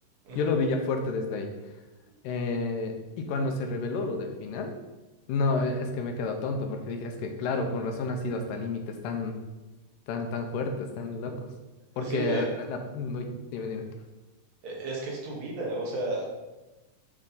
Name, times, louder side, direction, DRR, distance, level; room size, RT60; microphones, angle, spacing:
voice 1, 0.4-1.5 2.2-4.7 5.3-9.4 10.1-11.5 12.0-13.8, left 3 dB, 85° left, 4 dB, 2.3 m, -30 dB
voice 2, 12.0-12.5 14.6-16.2, right 2 dB, 85° right, -4 dB, 3.5 m, -32 dB
9.6 x 3.6 x 4.0 m, 1.1 s
omnidirectional pair, 3.9 m